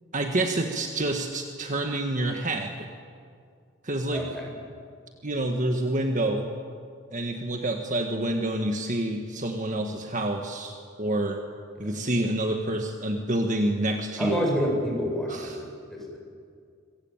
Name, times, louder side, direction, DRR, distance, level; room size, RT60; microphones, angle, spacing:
voice 1, 0.1-2.9 3.8-4.2 5.2-6.5 7.1-11.4 11.8-14.5 15.3-15.6, right 1 dB, 40° right, 4 dB, 1.6 m, -28 dB
voice 2, 4.1-4.4 11.7-11.9 14.2-16.2, equal, ahead, -2 dB, 7.7 m, -29 dB
26.5 x 23.5 x 9.1 m, 2.2 s
head